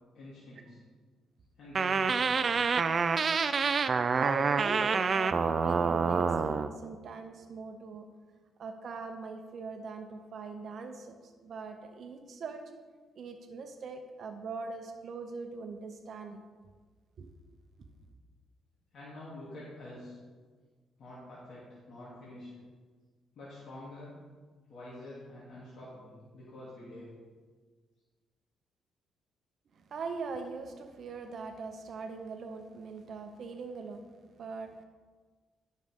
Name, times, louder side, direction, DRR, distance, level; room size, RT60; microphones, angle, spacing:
voice 1, 0.1-0.8 1.6-2.7 18.9-20.2 21.0-22.5 23.3-24.2 24.7-27.1, left 1 dB, 60° left, -9 dB, 2.7 m, -47 dB
sound 1, 1.8-6.7, right 5 dB, 40° right, 0.4 m, -27 dB
voice 2, 4.2-8.1 8.6-12.7 13.2-16.4 17.2-17.3 29.9-34.8, right 4 dB, 60° right, 6 dB, 0.8 m, -41 dB
12.0 x 6.3 x 3.6 m, 1.5 s
cardioid pair, 90°, 0 cm